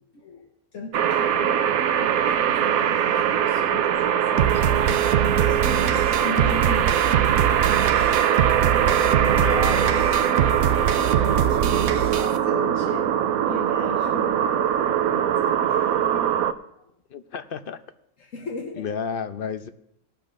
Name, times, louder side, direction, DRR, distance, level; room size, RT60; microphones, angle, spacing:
voice 1, 0.1-7.1 8.8-9.5 9.8-16.4 16.7-16.8 18.2-18.9, left 4 dB, 70° left, 1 dB, 1.4 m, -38 dB
sound 1, 0.9-16.5, right 9 dB, 90° right, 1.1 m, -22 dB
sound 2, 4.4-12.4, right 10 dB, 60° right, 0.8 m, -24 dB
voice 2, 9.3-10.2 17.1-17.8 18.8-19.7, left 6 dB, 50° left, 9 dB, 0.7 m, -31 dB
19.0 x 11.5 x 2.6 m, 0.77 s
omnidirectional pair, 1.4 m